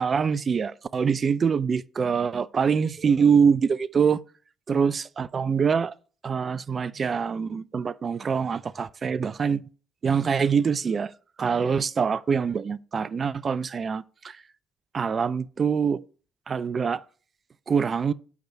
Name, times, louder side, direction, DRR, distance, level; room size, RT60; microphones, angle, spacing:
voice 1, 0.0-4.2 4.7-5.9 6.2-9.6 10.0-11.1 11.4-14.4 14.9-16.0 16.5-17.0 17.7-18.1, right 6 dB, 40° right, 0.3 m, -24 dB
4.7 x 4.6 x 5.4 m
hypercardioid pair, 50°, 0 cm